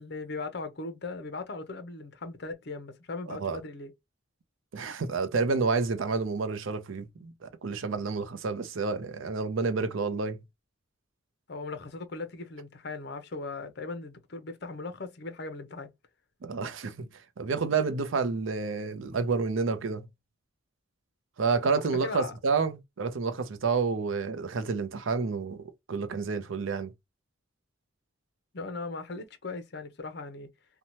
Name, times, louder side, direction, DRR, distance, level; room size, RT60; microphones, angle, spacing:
voice 1, 0.0-3.9 11.5-15.9 22.0-22.3 28.5-30.5, left 3 dB, 55° left, 0.6 m, -38 dB
voice 2, 3.3-3.6 4.7-10.4 16.4-17.1 17.4-20.1 21.4-26.9, right 4 dB, 75° right, 0.5 m, -29 dB
2.7 x 2.2 x 2.9 m
head